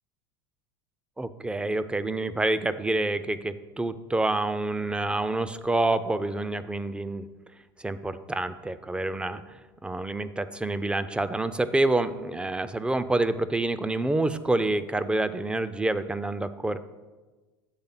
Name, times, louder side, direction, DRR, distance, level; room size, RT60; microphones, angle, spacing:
voice 1, 1.2-7.3 7.8-16.8, right 2 dB, 10° right, 12 dB, 0.4 m, -27 dB
7.9 x 3.4 x 5.7 m, 1.2 s
hypercardioid pair, 85°, 13 cm